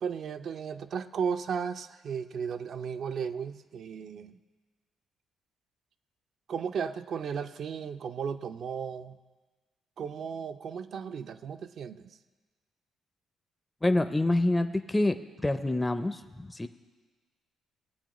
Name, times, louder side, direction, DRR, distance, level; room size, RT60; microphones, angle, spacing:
voice 1, 0.0-4.4 6.5-9.2 10.0-12.2, right 6 dB, 60° right, 9 dB, 0.5 m, -35 dB
voice 2, 13.8-16.7, left 2 dB, 15° left, 9 dB, 0.4 m, -27 dB
18.0 x 8.2 x 3.0 m, 1.3 s
cardioid pair, 90°, 0 cm